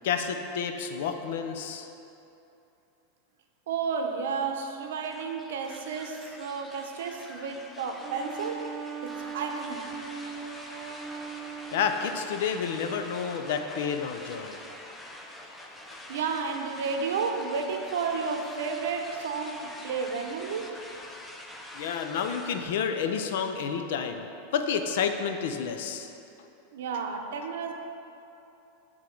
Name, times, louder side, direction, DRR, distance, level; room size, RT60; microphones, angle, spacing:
voice 1, 0.0-1.9 11.7-14.6 21.7-24.3 24.5-26.1, left 7 dB, 65° left, 6 dB, 0.5 m, -30 dB
voice 2, 3.7-8.6 9.0-9.9 16.1-20.8 26.7-27.7, right 5 dB, 80° right, 4 dB, 0.7 m, -32 dB
sound 1, 4.9-22.6, left 1 dB, 5° left, 0.4 m, -45 dB
Wind instrument woodwind instrument, 8.0-12.3, right 6 dB, 50° right, 1.1 m, -39 dB
9.1 x 3.6 x 4.5 m, 2.9 s
supercardioid pair, 165°, 0 cm